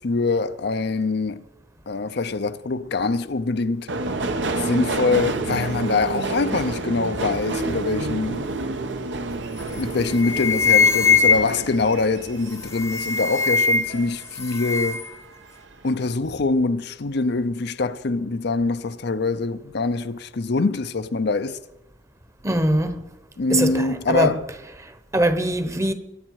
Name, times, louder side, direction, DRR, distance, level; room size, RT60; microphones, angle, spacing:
voice 1, 0.0-1.4 1.9-3.9 4.6-8.4 9.7-15.1 15.8-21.6 23.4-24.4, left 3 dB, 65° left, 0.6 m, -24 dB
Subway metro underground, 3.9-14.6 15.0-15.7 15.9-16.1, right 2 dB, 75° right, 1.1 m, -29 dB
sound 1, 9.6-9.8 10.1-11.8 12.6-14.1 14.3-15.1, left 5 dB, 15° left, 0.7 m, -21 dB
voice 2, 22.4-23.0 23.5-24.3 24.8-25.9, right 1 dB, 15° right, 1.0 m, -22 dB
22.5 x 10.0 x 4.7 m
head